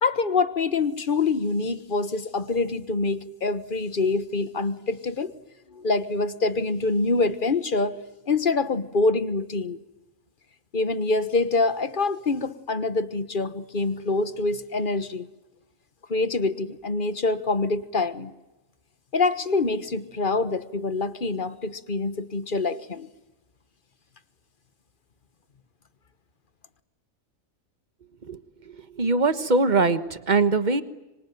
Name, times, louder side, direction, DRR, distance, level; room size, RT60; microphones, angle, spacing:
voice 1, 0.0-5.3 5.7-8.0 8.3-9.8 10.7-15.3 16.1-18.3 19.1-23.1, left 3 dB, 40° left, 13 dB, 1.4 m, -25 dB
voice 2, 28.7-30.8, right 3 dB, 35° right, 12 dB, 1.5 m, -22 dB
25.5 x 25.0 x 9.3 m, 1.0 s
omnidirectional pair, 1.5 m